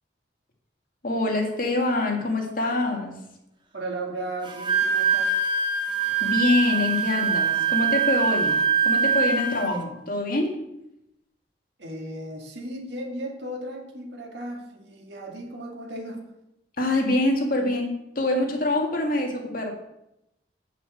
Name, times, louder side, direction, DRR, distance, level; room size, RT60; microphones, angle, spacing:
voice 1, 1.0-3.2 6.2-10.6 16.8-19.7, left 2 dB, 50° left, 1 dB, 2.0 m, -25 dB
voice 2, 3.7-5.4 11.8-16.3, right 1 dB, 65° right, 1 dB, 2.1 m, -35 dB
Wind instrument woodwind instrument, 4.5-9.8, right 5 dB, 25° right, 1.0 m, -23 dB
8.0 x 5.8 x 7.7 m, 0.84 s
head